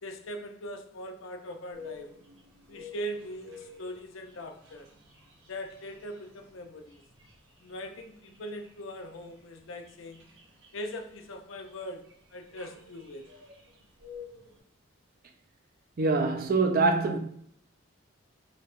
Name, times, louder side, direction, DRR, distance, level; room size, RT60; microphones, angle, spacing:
voice 1, 0.0-2.1 2.7-4.9 5.5-7.0 7.6-10.3 10.7-13.3, equal, 75° left, 0.5 m, -41 dB
sound 1, 1.7-14.6, left 5 dB, 65° right, 1.0 m, -52 dB
voice 2, 16.0-17.2, right 3 dB, 45° right, 0.4 m, -24 dB
4.4 x 2.8 x 2.5 m
head